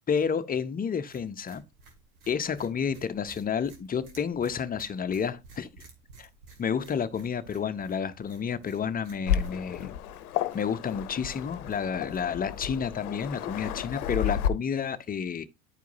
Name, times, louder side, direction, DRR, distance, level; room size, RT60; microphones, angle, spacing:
voice 1, 0.1-1.6 2.3-5.7 6.2-6.3 6.6-10.0 10.5-15.4, left 7 dB, 20° left, 0.5 m, -30 dB
sound 1, 1.1-13.1, right 3 dB, 80° right, 2.1 m, -55 dB
Waves surf, 9.3-14.5, left 10 dB, 85° left, 0.6 m, -32 dB
11.5 x 4.6 x 2.6 m
hypercardioid pair, 80°, 44 cm